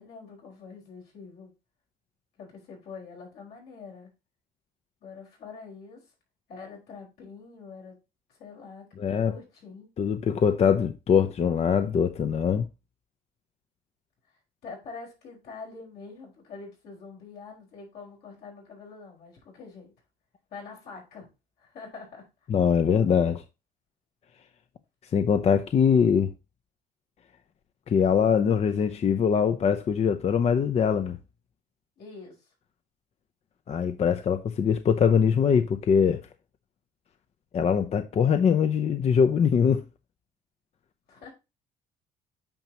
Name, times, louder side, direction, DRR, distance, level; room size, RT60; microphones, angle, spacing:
voice 1, 0.0-1.5 2.4-4.1 5.0-6.1 6.5-8.0 8.3-10.2 14.3-19.9 20.5-21.3 21.6-22.3 32.0-32.5 41.1-41.3, left 4 dB, 75° left, 4.6 m, -45 dB
voice 2, 9.0-9.3 10.0-12.6 22.5-23.4 25.1-26.3 27.9-31.2 33.7-36.2 37.5-39.8, left 7 dB, 40° left, 0.6 m, -22 dB
8.8 x 5.9 x 2.9 m
cardioid pair, 110°, 17 cm